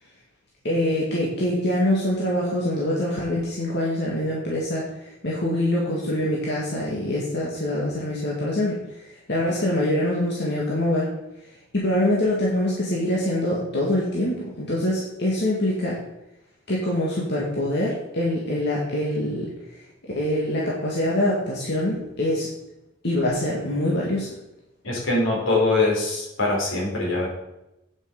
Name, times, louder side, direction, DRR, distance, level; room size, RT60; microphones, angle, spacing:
voice 1, 0.6-11.1 11.7-16.0 16.7-19.5 20.2-22.5 23.0-24.3, left 1 dB, 60° left, -4 dB, 2.0 m, -24 dB
voice 2, 24.8-27.3, left 2 dB, 85° left, -2 dB, 4.2 m, -23 dB
8.9 x 7.5 x 5.2 m, 0.91 s
head